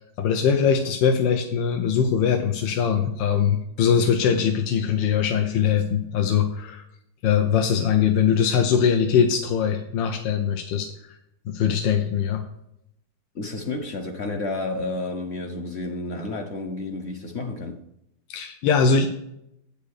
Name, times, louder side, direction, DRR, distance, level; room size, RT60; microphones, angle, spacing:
voice 1, 0.2-6.8 7.2-11.2 11.5-12.4 18.3-19.1, left 7 dB, 80° left, 1.5 m, -22 dB
voice 2, 13.3-17.8, left 2 dB, 50° left, 0.8 m, -31 dB
8.7 x 5.2 x 6.5 m
omnidirectional pair, 2.0 m